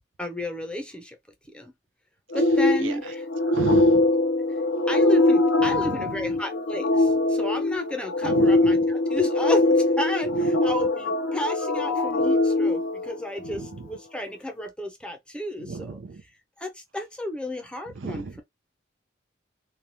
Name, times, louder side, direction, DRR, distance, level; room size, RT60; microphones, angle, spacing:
voice 1, 0.2-1.2 1.5-1.7 2.3-3.2 4.9-16.0 16.6-18.4, left 1 dB, 5° left, 0.6 m, -32 dB
sound 1, 2.3-13.6, left 2 dB, 90° left, 0.5 m, -22 dB
voice 2, 2.8-3.1 3.5-4.1 5.6-6.3 8.2-8.8 10.3-10.5 13.4-13.9 15.6-16.2 17.9-18.4, right 4 dB, 90° right, 0.5 m, -35 dB
3.1 x 2.2 x 2.6 m
head